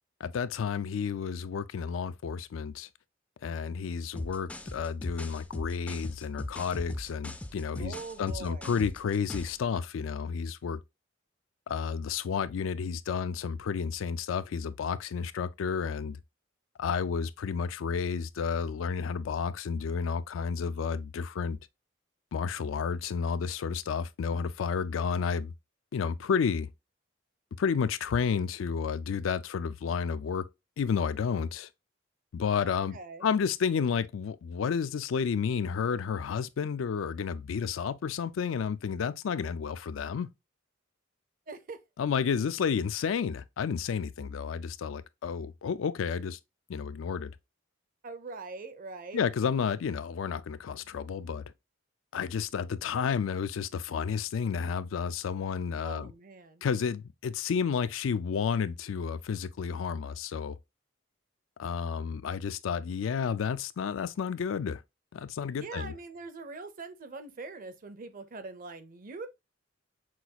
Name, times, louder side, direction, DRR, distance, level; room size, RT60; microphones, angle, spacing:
voice 1, 0.2-2.9 3.4-10.8 11.7-16.2 16.8-21.6 22.3-25.5 25.9-26.7 27.6-30.5 30.8-31.7 32.3-40.3 42.0-46.4 46.7-47.3 49.1-51.5 52.1-56.1 56.6-60.6 61.6-64.8 65.1-65.9, left 6 dB, 90° left, 0.4 m, -31 dB
sound 1, 4.2-9.6, left 1 dB, 5° left, 0.3 m, -40 dB
voice 2, 7.8-8.7 32.7-33.3 41.5-41.8 48.0-49.2 55.8-56.7 65.6-69.3, right 3 dB, 45° right, 0.6 m, -43 dB
6.0 x 2.3 x 2.7 m
head